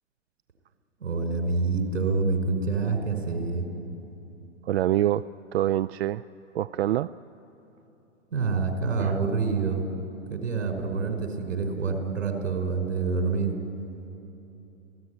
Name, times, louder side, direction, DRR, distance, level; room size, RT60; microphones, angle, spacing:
voice 1, 1.0-3.7 8.3-9.8 10.3-13.5, right 4 dB, 75° right, 4 dB, 5.3 m, -27 dB
voice 2, 4.7-5.2 5.5-6.2 6.5-7.1 9.0-9.1, right 13 dB, 55° right, 15 dB, 0.5 m, -25 dB
28.0 x 17.0 x 9.7 m, 2.9 s
figure-of-eight pair, 115°, 39 cm